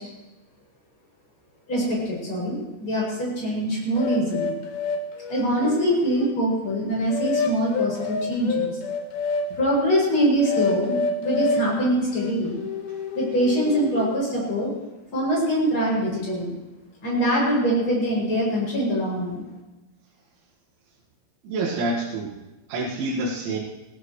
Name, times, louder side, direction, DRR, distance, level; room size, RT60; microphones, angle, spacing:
voice 1, 1.7-4.5 5.3-8.7 9.6-12.6 13.1-14.7 15.1-16.5 17.0-19.4, equal, 25° left, -4 dB, 7.7 m, -23 dB
sound 1, 4.0-6.4 7.1-9.5 10.0-11.7 12.1-14.2, left 4 dB, 65° left, 2.9 m, -28 dB
voice 2, 21.4-22.3 22.7-23.6, right 2 dB, 75° right, -6 dB, 4.3 m, -27 dB
20.5 x 16.5 x 3.2 m, 1.1 s
omnidirectional pair, 5.5 m